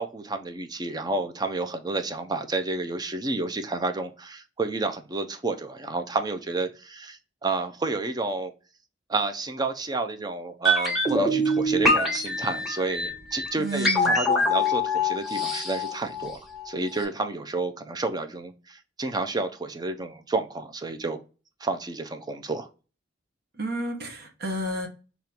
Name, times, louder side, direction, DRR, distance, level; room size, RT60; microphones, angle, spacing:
voice 1, 0.0-8.5 9.1-16.4 16.7-21.2 21.6-22.7, right 3 dB, 20° right, 0.5 m, -30 dB
sound 1, 10.6-16.7 17.0-17.1, left 1 dB, ahead, 1.1 m, -24 dB
voice 2, 13.6-14.2 23.6-24.9, right 1 dB, 55° right, 1.1 m, -31 dB
3.6 x 2.9 x 4.3 m
head